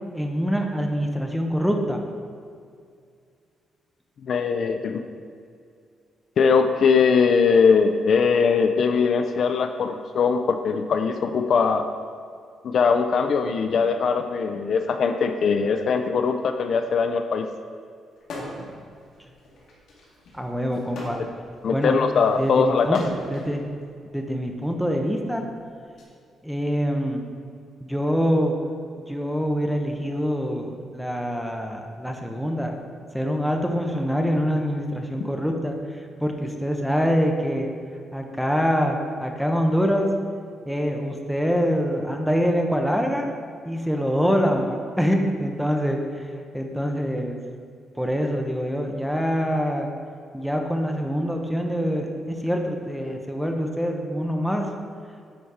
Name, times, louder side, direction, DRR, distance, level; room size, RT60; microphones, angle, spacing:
voice 1, 0.1-2.0 20.3-21.2 21.6-22.0 22.4-23.0 23.3-23.6 24.1-25.4 26.4-27.2 27.8-28.6 29.0-32.8 33.1-35.8 36.2-37.7 38.1-40.1 40.7-43.3 43.7-46.0 46.5-47.4 48.0-49.9 50.3-54.7, equal, ahead, 2 dB, 0.8 m, -25 dB
voice 2, 4.2-5.0 6.4-11.9 12.6-17.5 21.6-23.0, left 5 dB, 55° left, 7 dB, 0.4 m, -21 dB
sound 1, 18.2-18.8 19.1-23.5 24.4-26.0, left 1 dB, 80° left, 2.0 m, -39 dB
10.0 x 4.2 x 4.7 m, 2.2 s
cardioid pair, 135°, 0 cm